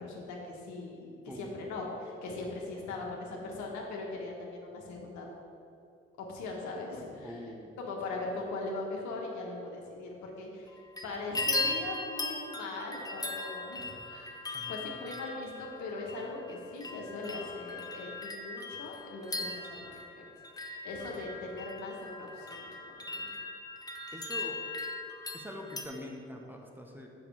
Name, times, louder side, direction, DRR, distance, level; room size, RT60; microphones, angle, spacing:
voice 1, 0.0-5.3 6.2-7.5 7.8-14.4 14.7-20.2 20.6-23.3, left 3 dB, 65° left, -1 dB, 1.4 m, -40 dB
voice 2, 7.2-7.8 14.5-14.8 24.1-24.6 25.3-27.1, left 1 dB, 5° right, 0 dB, 1.2 m, -44 dB
sound 1, 10.7-11.0 11.3-25.8, left 2 dB, 10° left, 0.9 m, -39 dB
7.2 x 6.0 x 4.7 m, 2.7 s
hypercardioid pair, 40°, 30 cm